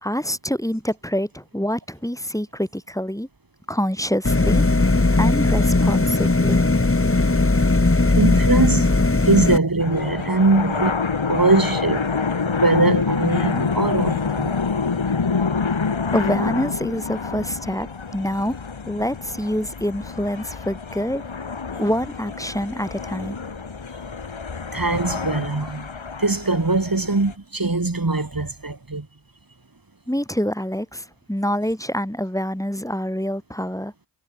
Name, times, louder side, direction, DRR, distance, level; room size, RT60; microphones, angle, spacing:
voice 1, 0.0-3.3 3.7-4.6 5.2-6.6 16.1-17.9 18.1-18.5 18.9-21.2 21.8-23.4 30.1-33.9, equal, 5° left, 7.2 m, -26 dB
sound 1, 4.2-9.6, left 2 dB, 25° left, 1.7 m, -18 dB
voice 2, 8.2-8.9 9.3-10.9 11.3-14.5 24.7-25.9 26.2-29.1, right 3 dB, 45° right, 4.4 m, -21 dB
sound 2, 9.8-27.3, left 5 dB, 75° left, 2.3 m, -27 dB
wide cardioid pair, 55°, 48 cm